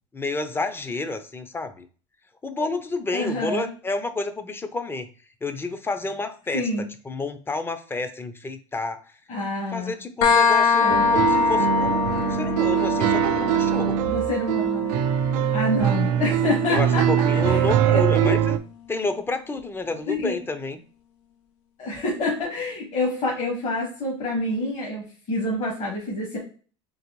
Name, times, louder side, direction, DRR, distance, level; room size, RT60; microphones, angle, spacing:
voice 1, 0.1-1.9 2.4-5.1 5.4-6.7 7.0-9.0 9.7-14.0 16.7-18.6 18.9-20.8, left 3 dB, 15° left, 9 dB, 0.6 m, -30 dB
voice 2, 3.1-3.7 6.5-6.8 9.3-9.9 10.8-11.0 14.1-14.9 15.5-17.1 17.3-17.6 18.2-18.4 20.1-20.4 21.8-26.4, left 1 dB, 50° left, -3 dB, 1.6 m, -27 dB
sound 1, 10.2-17.6, left 5 dB, 85° left, 0.6 m, -24 dB
sound 2, 10.9-18.6, right 10 dB, 70° right, 0.4 m, -22 dB
3.9 x 3.0 x 3.0 m, 0.39 s
supercardioid pair, 100°, 15 cm